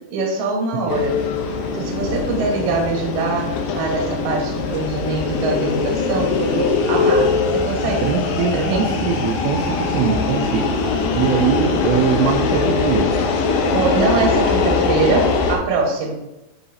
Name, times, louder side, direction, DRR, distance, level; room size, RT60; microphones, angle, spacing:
voice 1, 0.1-1.2 1.7-8.9 13.7-16.1, right 3 dB, 60° right, 0 dB, 2.2 m, -23 dB
voice 2, 0.7-1.1 8.0-10.8 11.1-13.1, right 8 dB, 80° right, 1 dB, 2.6 m, -22 dB
sound 1, 0.9-15.6, left 4 dB, 85° left, 2.1 m, -21 dB
11.0 x 5.0 x 2.7 m, 0.96 s
omnidirectional pair, 5.3 m